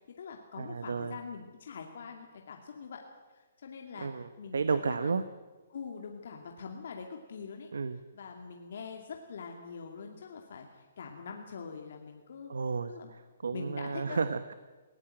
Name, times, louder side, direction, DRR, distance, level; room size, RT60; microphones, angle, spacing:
voice 1, 0.0-3.0 3.3-5.1 5.7-7.7 8.1-12.5 12.9-13.1 13.5-14.2, left 5 dB, 65° left, 2 dB, 2.4 m, -44 dB
voice 2, 0.6-1.2 4.0-5.2 7.7-8.0 12.5-14.5, right 5 dB, 85° right, 12 dB, 1.0 m, -32 dB
19.0 x 16.5 x 9.0 m, 1.3 s
hypercardioid pair, 155°, 0 cm